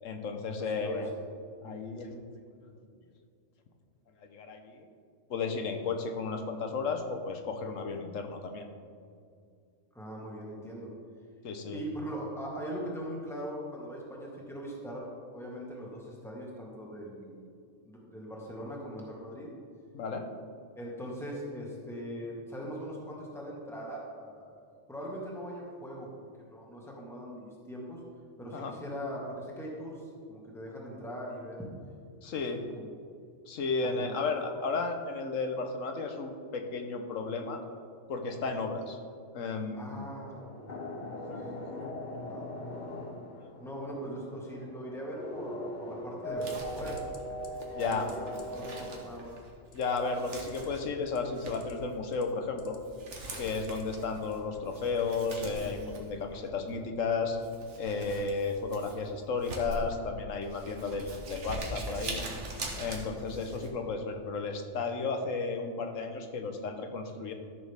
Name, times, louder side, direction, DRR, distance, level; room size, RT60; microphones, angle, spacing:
voice 1, 0.0-1.1 1.6-2.3 2.6-2.8 4.2-4.9 5.3-8.7 11.4-11.8 19.9-20.2 28.5-28.7 32.2-32.6 33.5-37.6 38.1-39.0 39.3-40.1 41.1-41.6 43.3-43.5 47.7-48.1 49.7-52.8 53.4-57.4 57.8-62.2 62.8-67.3, left 4 dB, 90° left, 5 dB, 1.3 m, -33 dB
voice 2, 9.9-10.9 11.7-17.5 17.9-19.5 20.8-26.1 26.4-28.0 28.4-31.7 32.7-32.9 33.8-34.1 34.5-34.8 39.7-40.7 42.0-42.5 43.6-47.0 47.8-48.3 48.5-49.3, equal, ahead, -4 dB, 1.8 m, -41 dB
sound 1, 39.6-49.2, equal, 40° left, 0.8 m, -40 dB
Crumpling crinkling, 46.3-63.7, right 1 dB, 65° right, 1.6 m, -43 dB
sound 2, 46.5-46.7 47.0-47.2 47.4-47.7 47.9-48.1 48.4-48.5 49.7-50.0 50.4-50.7 51.0-51.7 52.1-52.8 53.2-53.8 54.2-54.4, left 5 dB, 70° left, 1.3 m, -53 dB
14.0 x 6.5 x 3.5 m, 2.3 s
omnidirectional pair, 1.3 m